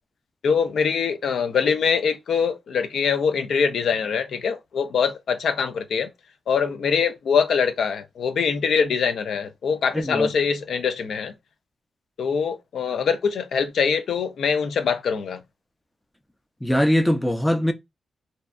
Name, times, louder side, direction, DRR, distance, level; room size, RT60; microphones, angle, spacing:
voice 1, 0.4-6.1 6.5-11.3 12.2-15.4, left 6 dB, 80° left, 0.4 m, -23 dB
voice 2, 9.9-10.3 16.6-17.7, equal, 5° left, 0.4 m, -21 dB
2.6 x 2.2 x 2.3 m
cardioid pair, 85°, 0 cm